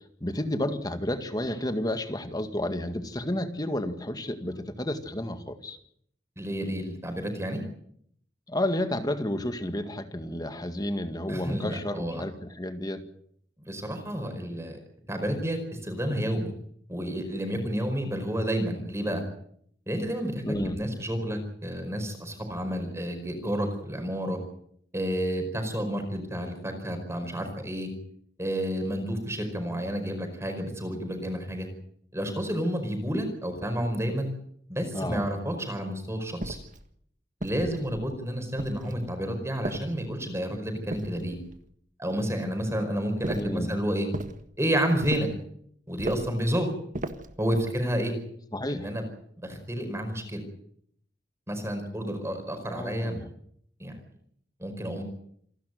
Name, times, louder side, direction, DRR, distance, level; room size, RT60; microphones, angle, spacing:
voice 1, 0.2-5.8 8.5-13.0 20.4-20.8 34.9-35.3 43.4-43.7 48.5-48.9 52.7-53.3, left 1 dB, 20° left, 8 dB, 1.9 m, -31 dB
voice 2, 6.4-7.6 11.3-12.2 13.7-14.8 15.1-16.5 16.9-19.2 19.9-20.4 20.7-24.4 24.9-27.9 28.4-31.7 32.1-34.3 34.7-36.6 37.4-41.4 42.0-44.1 44.6-45.3 45.9-46.7 47.4-48.1 48.7-49.0 49.4-50.4 51.5-53.2 53.8-54.0 54.6-55.0, equal, 15° right, 5 dB, 4.9 m, -30 dB
sound 1, 36.4-36.8 37.4-38.1 38.6-39.1 39.6-40.3 40.9-41.6 43.2-43.6 44.1-44.4 45.0-45.4 46.0-46.4 46.9-47.4, right 1 dB, 45° right, 1.6 m, -36 dB
28.0 x 12.0 x 9.4 m, 0.67 s
head